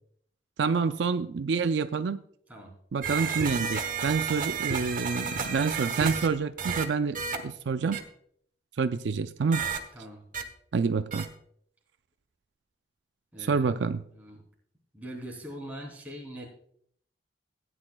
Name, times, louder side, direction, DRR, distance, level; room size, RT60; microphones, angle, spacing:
voice 1, 0.6-2.2 2.9-7.2 7.4-8.0 8.8-9.7 10.7-11.3 13.5-14.0, right 5 dB, 75° right, 10 dB, 0.4 m, -27 dB
sound 1, 3.0-6.3 6.6-6.8 7.1-7.4 7.9-8.0 9.5-9.8 10.3-10.4 11.1-11.3, right 6 dB, 45° right, 1.1 m, -31 dB
voice 2, 9.9-10.3 13.3-13.8 14.1-14.4 14.9-16.5, equal, 10° right, -3 dB, 3.1 m, -42 dB
17.0 x 9.7 x 2.3 m, 0.65 s
head